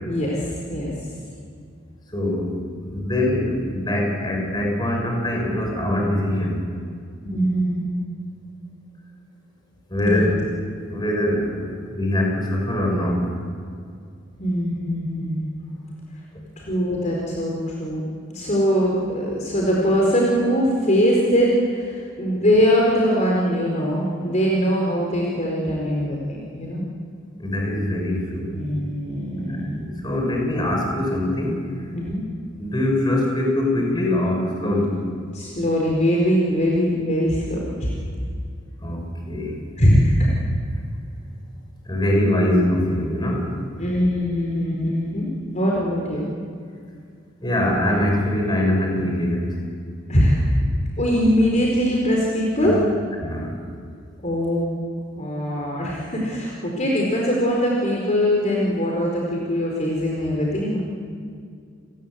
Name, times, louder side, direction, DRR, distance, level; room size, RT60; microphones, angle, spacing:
voice 1, 0.1-0.9 7.3-8.0 10.0-10.3 14.4-15.4 16.6-18.0 18.3-26.8 28.5-29.7 31.9-32.2 35.3-37.9 39.8-40.3 43.8-46.3 50.1-50.5 51.0-52.8 54.2-54.7 55.1-60.8, equal, 35° left, -2 dB, 4.5 m, -22 dB
voice 2, 2.1-2.6 2.8-6.6 9.9-10.4 10.9-13.3 27.4-28.6 29.5-31.6 32.5-35.0 38.8-39.6 41.8-43.5 47.4-49.6 52.6-52.8 53.2-53.6, left 1 dB, 20° left, 1 dB, 6.3 m, -23 dB
30.0 x 19.5 x 8.3 m, 2.2 s
head